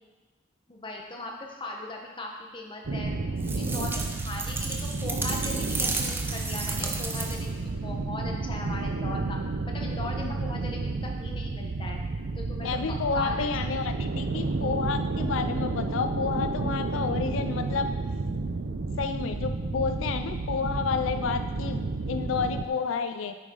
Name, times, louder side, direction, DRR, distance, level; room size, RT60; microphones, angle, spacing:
voice 1, 0.7-3.1 3.5-9.4 9.7-12.0 12.4-13.7, left 2 dB, 25° left, 0 dB, 1.1 m, -39 dB
sound 1, 2.8-22.7, right 3 dB, 65° right, 0.5 m, -31 dB
sound 2, 3.4-7.6, right 3 dB, 10° right, 0.5 m, -33 dB
voice 2, 12.6-17.9 19.0-23.4, left 5 dB, 90° left, 8 dB, 0.4 m, -30 dB
9.3 x 6.4 x 3.9 m, 1.3 s
head